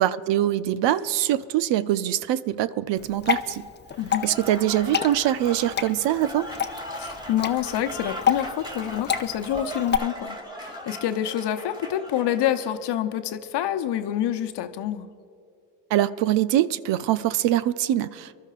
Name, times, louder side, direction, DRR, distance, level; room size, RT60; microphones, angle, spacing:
voice 1, 0.0-3.6 4.2-6.5 15.9-18.3, right 12 dB, 60° right, 15 dB, 0.6 m, -23 dB
Water / Drip, 3.0-10.0, left 8 dB, 20° left, 0.6 m, -29 dB
Applause / Crowd, 4.0-12.8, equal, 10° right, 2.0 m, -38 dB
voice 2, 6.9-10.4 10.6-15.1, left 11 dB, 55° left, 8 dB, 0.9 m, -27 dB
26.0 x 12.0 x 2.5 m, 2.4 s
hypercardioid pair, 60°, 50 cm